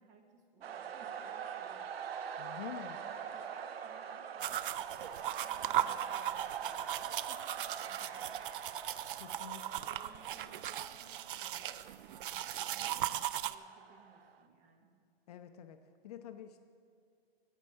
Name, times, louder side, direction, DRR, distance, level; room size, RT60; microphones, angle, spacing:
voice 1, 0.0-2.6 2.8-8.9 9.5-15.0, right 5 dB, 25° right, 4 dB, 1.1 m, -60 dB
sound 1, 0.6-14.4, right 7 dB, 75° right, 0.9 m, -45 dB
voice 2, 2.4-3.0 9.2-9.9 15.3-16.6, left 10 dB, 40° left, 8 dB, 0.6 m, -48 dB
sound 2, 4.4-13.6, right 11 dB, 55° right, 0.5 m, -38 dB
16.5 x 5.5 x 6.5 m, 2.3 s
hypercardioid pair, 145°, 31 cm